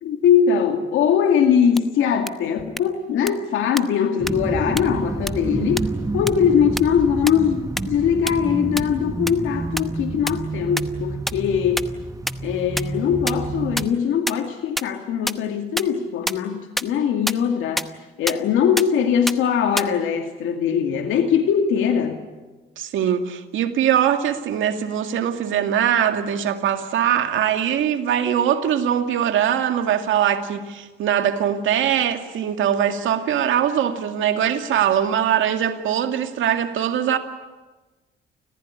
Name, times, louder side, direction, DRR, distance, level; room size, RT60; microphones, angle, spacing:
voice 1, 0.0-11.9 12.4-17.9 18.2-22.2, left 7 dB, 85° left, 2.4 m, -21 dB
sound 1, 1.8-1.9 2.3-2.4 2.8-2.9 3.3-3.4 3.8-3.9 4.3-4.4 4.8-4.9 5.3-5.4 5.8-5.9 6.3-6.4 6.8-6.9 7.3-7.4 7.8-7.9 8.3-8.4 8.8-8.9 9.3-9.4 9.8-9.9 10.3-10.4 10.8-10.9 11.3-11.4 11.8-11.9 12.3-12.4 12.8-12.9 13.3-13.4 13.8-13.9 14.3-14.4 14.8-14.9 15.3-15.4 15.8-15.9 16.3-16.4 16.8-16.9 17.3-17.4 17.8-17.9 18.3-18.4 18.8-18.9 19.3-19.4 19.8-19.9, equal, ahead, 0.9 m, -23 dB
sound 2, 4.2-13.9, right 3 dB, 15° right, 1.2 m, -29 dB
voice 2, 22.8-37.2, right 9 dB, 80° right, 2.1 m, -21 dB
29.5 x 15.0 x 9.9 m
cardioid pair, 90°, 20 cm